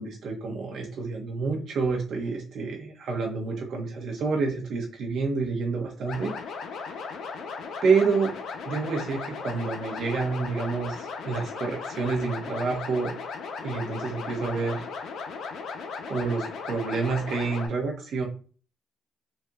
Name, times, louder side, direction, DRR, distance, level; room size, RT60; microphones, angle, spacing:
voice 1, 0.0-6.3 7.8-8.3 8.7-13.1 13.6-14.8 16.1-18.2, right 4 dB, 70° right, 1 dB, 1.1 m, -28 dB
sound 1, 6.1-17.7, left 5 dB, 70° left, 0.6 m, -37 dB
4.1 x 2.7 x 2.4 m, 0.39 s
cardioid pair, 90°, 0 cm